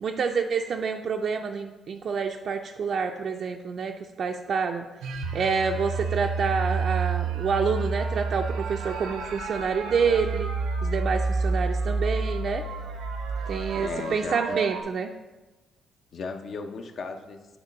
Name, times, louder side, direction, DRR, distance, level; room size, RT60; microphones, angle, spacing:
voice 1, 0.0-4.9 5.3-10.5 10.8-12.6 13.5-15.1, right 5 dB, 55° right, 4 dB, 0.4 m, -28 dB
sound 1, 5.0-14.8, right 3 dB, 90° right, 0.7 m, -29 dB
voice 2, 13.7-14.6 16.1-17.6, left 4 dB, 60° left, 6 dB, 0.6 m, -36 dB
8.0 x 3.0 x 5.2 m, 1.2 s
cardioid pair, 90°, 0 cm